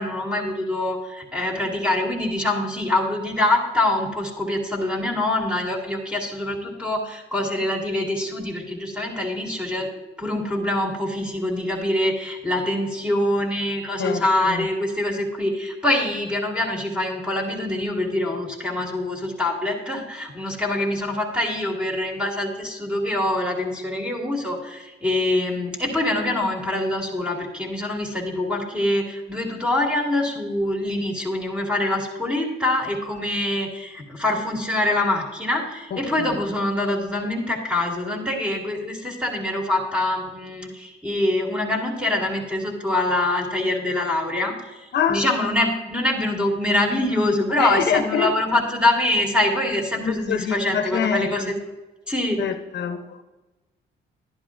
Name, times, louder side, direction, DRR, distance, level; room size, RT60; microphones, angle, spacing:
voice 1, 0.0-9.9 10.2-44.6 45.1-51.6 52.1-52.4, left 1 dB, 5° right, 2.3 m, -24 dB
voice 2, 14.0-14.7 35.9-36.3 44.9-45.3 47.6-48.4 49.9-51.6 52.4-53.2, left 7 dB, 60° left, 0.8 m, -25 dB
11.0 x 11.0 x 2.5 m
cardioid pair, 90°, 20 cm